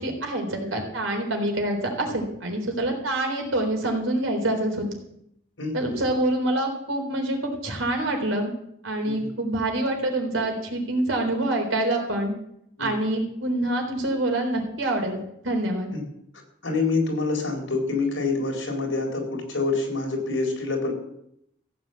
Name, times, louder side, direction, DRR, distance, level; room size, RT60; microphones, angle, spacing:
voice 1, 0.0-5.0 5.7-8.5 8.8-12.3 12.8-15.2 15.4-15.9, right 1 dB, 80° right, 3 dB, 3.8 m, -26 dB
voice 2, 16.6-20.9, left 3 dB, 70° left, 1 dB, 4.4 m, -26 dB
15.5 x 7.5 x 8.2 m, 0.76 s
head